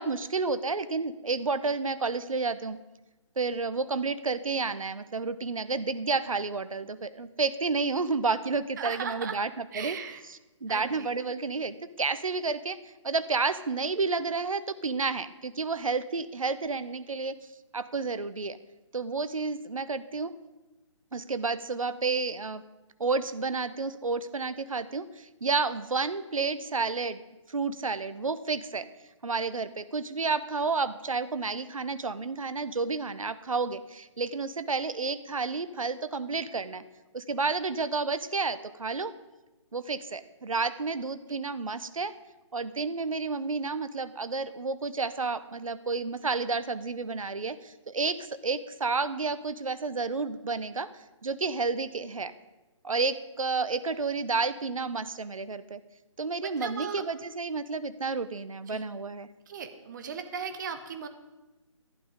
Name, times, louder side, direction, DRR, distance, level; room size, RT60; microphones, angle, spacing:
voice 1, 0.0-2.8 3.4-10.0 10.6-12.8 13.0-17.3 17.7-18.6 18.9-20.3 21.1-22.6 23.0-27.2 27.5-28.9 29.2-36.8 37.1-39.1 39.7-42.1 42.5-52.3 52.8-55.8 56.2-59.3, right 4 dB, 90° right, 14 dB, 0.7 m, -30 dB
voice 2, 8.8-9.4 9.7-10.2 10.7-11.1 53.5-53.7 56.4-57.0 58.7-58.8 59.5-61.1, right 6 dB, 35° right, 8 dB, 1.1 m, -37 dB
11.5 x 11.0 x 5.1 m, 1.1 s
figure-of-eight pair, 150°, 17 cm